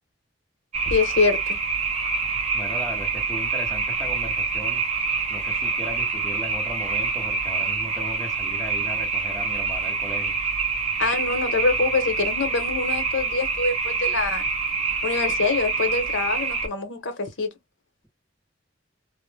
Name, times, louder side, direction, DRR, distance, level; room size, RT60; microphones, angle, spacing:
sound 1, 0.7-16.7, right 4 dB, 35° right, 0.6 m, -26 dB
voice 1, 0.9-1.6 11.0-14.5 15.0-17.5, left 4 dB, 85° left, 0.8 m, -25 dB
voice 2, 2.5-4.8 5.3-10.4, equal, 5° left, 0.8 m, -37 dB
2.1 x 2.0 x 3.2 m
head